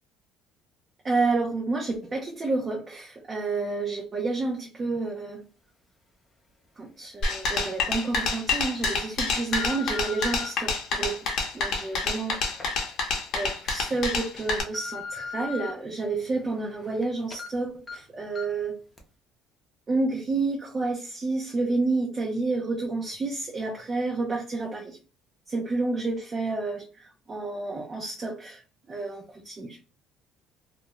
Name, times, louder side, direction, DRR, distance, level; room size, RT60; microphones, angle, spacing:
voice 1, 1.0-5.4 6.8-12.4 13.3-18.8 19.9-25.0 25.5-28.6 28.9-29.8, right 3 dB, 25° right, 0 dB, 0.5 m, -30 dB
sound 1, 7.2-14.6, left 3 dB, 60° left, 0.7 m, -28 dB
sound 2, 7.2-7.3 7.9-8.2 8.9-10.5 11.2-13.5 13.9-14.0 14.4-15.7 16.2-17.0 17.3-17.5 17.9-18.0 18.4-18.6 19.0-19.1, left 5 dB, 15° left, 0.6 m, -40 dB
2.4 x 2.1 x 2.9 m, 0.37 s
cardioid pair, 140°, 0 cm